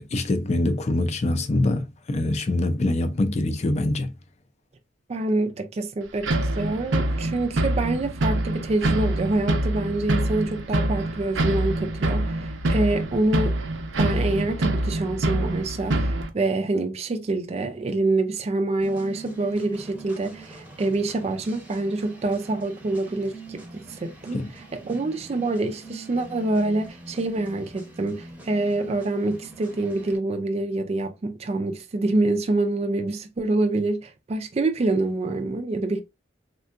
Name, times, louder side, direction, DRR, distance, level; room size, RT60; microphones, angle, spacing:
voice 1, 0.0-4.1 24.3-24.5, left 2 dB, 35° left, 0.4 m, -24 dB
voice 2, 5.1-13.6 14.0-24.4 24.7-36.0, right 2 dB, 35° right, 0.4 m, -26 dB
sound 1, 6.2-16.3, right 1 dB, 85° right, 0.6 m, -25 dB
sound 2, 18.8-30.2, right 2 dB, 10° right, 0.7 m, -44 dB
3.6 x 2.3 x 2.4 m
head